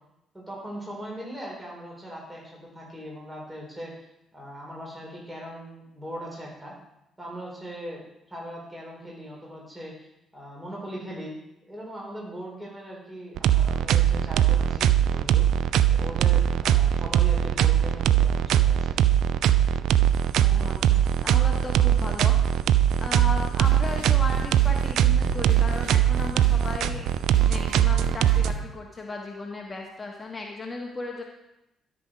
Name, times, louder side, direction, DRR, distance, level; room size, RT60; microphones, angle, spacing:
voice 1, 0.3-3.9 4.3-6.7 7.2-8.0 8.3-15.6 15.9-19.0, equal, 10° right, -3 dB, 3.8 m, -39 dB
sound 1, 13.4-28.5, right 10 dB, 60° right, 0.3 m, -21 dB
voice 2, 20.3-22.7 23.0-31.2, left 3 dB, 25° left, 1 dB, 1.3 m, -36 dB
sound 2, 23.2-28.7, right 1 dB, 75° right, 3.0 m, -37 dB
12.5 x 5.1 x 5.1 m, 0.86 s
figure-of-eight pair, 45°, 0 cm